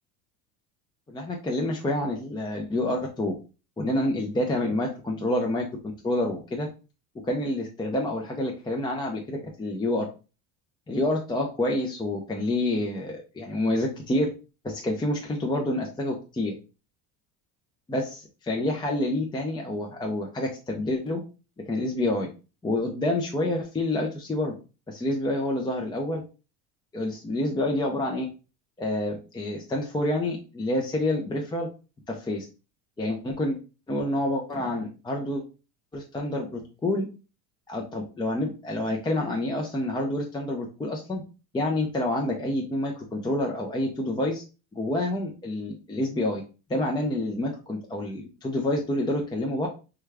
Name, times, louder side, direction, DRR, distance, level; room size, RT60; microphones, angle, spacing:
voice 1, 1.1-3.3 3.8-5.7 6.0-6.7 7.2-10.1 10.9-14.3 14.6-16.5 17.9-21.2 21.7-22.3 22.6-24.5 24.9-26.2 26.9-28.3 28.8-31.7 32.1-32.5 33.0-33.6 33.9-35.4 35.9-37.1 37.7-41.2 41.5-44.4 44.7-46.4 46.7-49.7, left 1 dB, 10° left, 0 dB, 0.5 m, -28 dB
3.3 x 2.3 x 3.3 m, 0.32 s
supercardioid pair, 105°, 38 cm